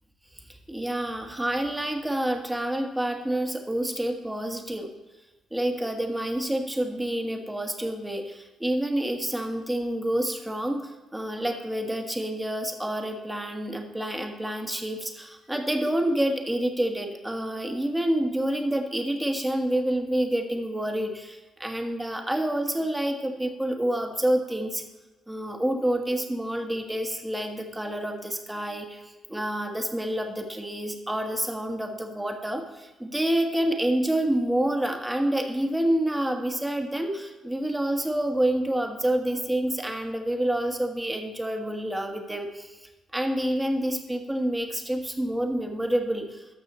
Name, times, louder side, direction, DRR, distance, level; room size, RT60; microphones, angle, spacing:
voice 1, 0.3-4.9 5.5-24.8 25.3-42.8 43.1-46.5, right 1 dB, 10° right, 4 dB, 1.3 m, -28 dB
13.0 x 6.0 x 4.2 m, 1.1 s
cardioid pair, 90°, 0 cm